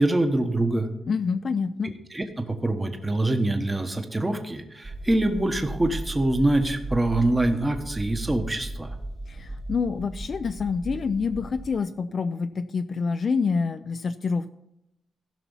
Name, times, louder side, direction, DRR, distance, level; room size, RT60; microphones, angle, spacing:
voice 1, 0.0-0.9 1.8-9.0, right 1 dB, 15° right, 6 dB, 1.2 m, -25 dB
voice 2, 1.1-1.9 9.3-14.5, left 5 dB, 50° left, 9 dB, 0.4 m, -27 dB
sound 1, 4.8-11.7, right 1 dB, 40° right, 2.0 m, -36 dB
15.5 x 6.0 x 5.5 m, 0.85 s
cardioid pair, 105°, 0 cm